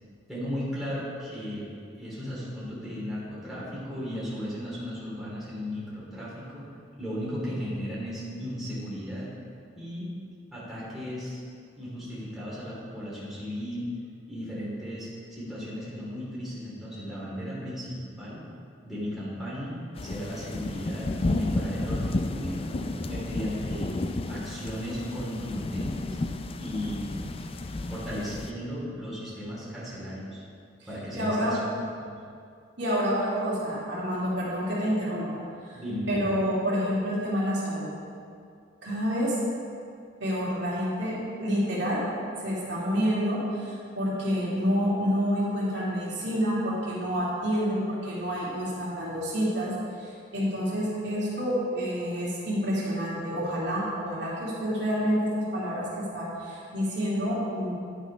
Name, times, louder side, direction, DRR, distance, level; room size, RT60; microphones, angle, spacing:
voice 1, 0.3-6.7 7.0-9.3 9.7-10.1 10.5-11.4 11.8-13.9 14.3-17.9 18.2-18.4 18.8-22.8 23.1-24.0 24.3-26.2 26.6-27.1 27.9-30.4 30.9-31.6 32.0-32.1 35.7-36.1, equal, ahead, -9 dB, 2.7 m, -35 dB
sound 1, 20.0-28.5, left 2 dB, 30° left, 0.4 m, -32 dB
voice 2, 31.1-31.5 32.8-35.3 35.6-35.8 36.1-37.9 38.8-39.4 40.2-42.0 42.4-49.7 50.0-57.7, equal, 60° right, -7 dB, 2.5 m, -28 dB
10.0 x 6.2 x 5.3 m, 2.3 s
head